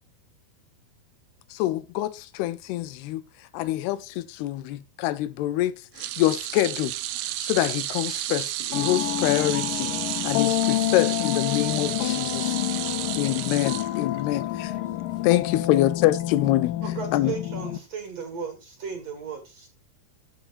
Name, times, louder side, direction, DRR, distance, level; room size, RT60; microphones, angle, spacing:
voice 1, 1.5-3.2 3.5-6.9 7.4-9.9 10.2-12.6 13.2-14.7 15.2-16.7 17.1-17.3, left 15 dB, 90° left, 2.8 m, -25 dB
sound 1, 6.0-14.4 14.8-15.0 16.2-16.3, right 14 dB, 85° right, 2.7 m, -32 dB
sound 2, 8.7-17.8, left 14 dB, 70° left, 2.4 m, -28 dB
voice 2, 14.5-15.2 18.9-19.0, left 3 dB, 40° left, 4.5 m, -58 dB
voice 3, 16.8-19.7, right 6 dB, 50° right, 2.6 m, -35 dB
14.0 x 7.1 x 2.5 m
omnidirectional pair, 4.5 m